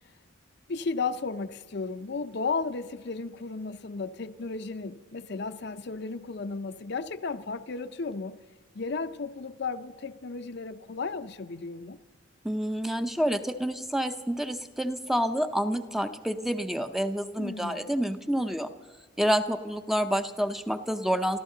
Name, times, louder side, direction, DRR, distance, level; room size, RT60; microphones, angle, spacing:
voice 1, 0.7-8.4 8.7-12.0 17.4-18.0, left 4 dB, 55° left, 0.6 m, -34 dB
voice 2, 12.4-18.7 19.2-21.4, equal, ahead, 0.6 m, -28 dB
27.0 x 14.0 x 3.9 m
head